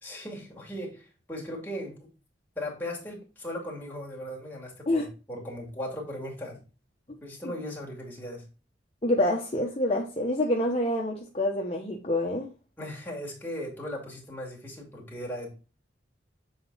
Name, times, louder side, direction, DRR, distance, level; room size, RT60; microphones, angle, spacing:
voice 1, 0.0-2.0 2.6-6.6 7.2-8.4 12.8-15.5, equal, 10° left, -3 dB, 2.4 m, -38 dB
voice 2, 9.0-12.5, left 1 dB, 30° left, 0 dB, 0.9 m, -27 dB
7.6 x 4.1 x 4.0 m, 0.33 s
head